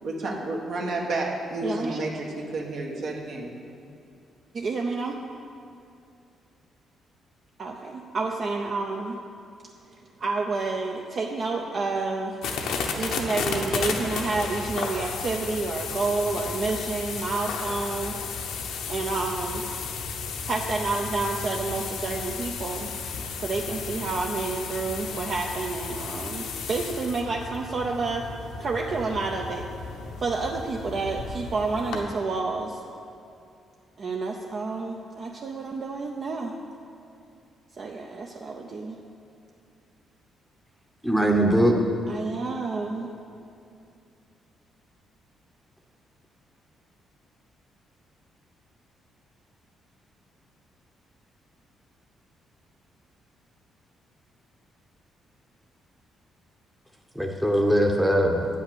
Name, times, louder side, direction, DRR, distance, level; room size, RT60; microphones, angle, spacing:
voice 1, 0.0-3.5, right 2 dB, 65° right, 0 dB, 1.3 m, -30 dB
voice 2, 1.6-2.0 4.5-5.1 7.6-9.2 10.2-12.4 13.0-18.1 18.9-19.6 20.5-22.9 23.4-28.2 28.6-29.6 30.2-32.8 34.0-36.6 37.8-39.0 42.1-43.1, right 3 dB, 50° right, 1 dB, 0.6 m, -29 dB
sound 1, 12.4-32.0, left 5 dB, 85° left, 0.9 m, -33 dB
voice 3, 41.0-41.8 57.1-58.5, right 1 dB, ahead, 1 dB, 0.8 m, -21 dB
8.6 x 5.7 x 6.8 m, 2.6 s
cardioid pair, 90°, 0 cm